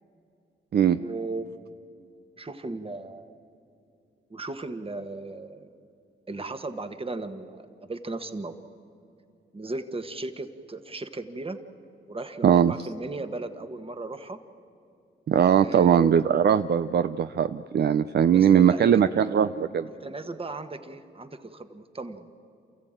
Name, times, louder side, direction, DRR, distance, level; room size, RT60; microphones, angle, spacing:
voice 1, 0.8-1.5 2.4-3.3 4.3-5.7 6.3-8.5 9.5-11.6 12.1-14.4 15.6-16.3 18.3-18.9 20.0-22.3, right 2 dB, 25° right, 8 dB, 1.5 m, -36 dB
voice 2, 12.4-12.7 15.3-19.9, right 8 dB, 55° right, 10 dB, 0.5 m, -20 dB
28.0 x 14.5 x 9.0 m, 2.6 s
cardioid pair, 65°, 21 cm